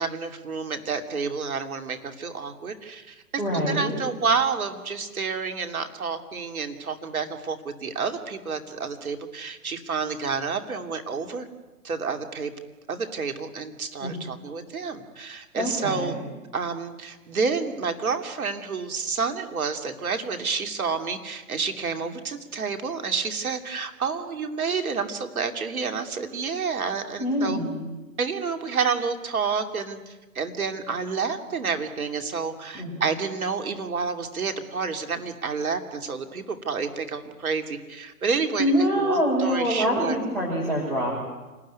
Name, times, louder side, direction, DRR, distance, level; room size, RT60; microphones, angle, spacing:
voice 1, 0.0-3.2 3.5-11.5 11.8-12.5 12.9-16.1 16.5-27.6 28.2-38.7 39.0-40.2, right 5 dB, 65° right, 6 dB, 3.0 m, -29 dB
voice 2, 3.4-4.0 14.0-14.2 15.5-16.2 27.2-27.8 32.7-33.1 38.6-41.1, equal, ahead, -7 dB, 6.0 m, -25 dB
28.0 x 20.0 x 9.6 m, 1.2 s
figure-of-eight pair, 135°, 47 cm